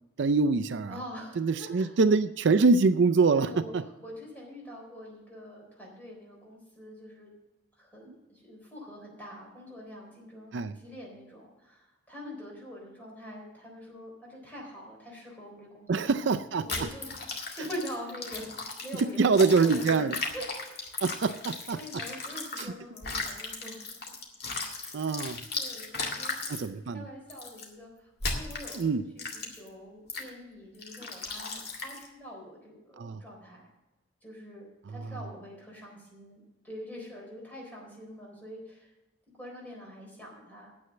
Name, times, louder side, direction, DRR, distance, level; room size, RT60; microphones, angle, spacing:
voice 1, 0.2-1.0 1.4-3.8 8.1-8.2 10.5-10.7 15.9-16.9 19.0-20.2 21.0-21.8 22.6-22.7 24.9-25.4 26.5-27.0 28.7-29.0 33.0-33.2, right 4 dB, 65° right, 9 dB, 0.4 m, -25 dB
voice 2, 0.9-1.9 3.3-3.7 4.0-7.3 7.8-16.3 16.6-20.0 20.3-20.4 21.7-23.8 24.4-24.5 24.8-25.3 25.6-28.9 29.1-33.6 34.2-38.9 39.3-40.7, equal, 10° left, -3 dB, 3.9 m, -45 dB
sound 1, 16.7-22.6 23.0-26.6 27.3-27.7 28.2-28.8 29.2-29.7 30.1-30.3 30.8-32.1, left 3 dB, 55° left, 2.0 m, -36 dB
9.7 x 8.0 x 7.6 m, 1.0 s
head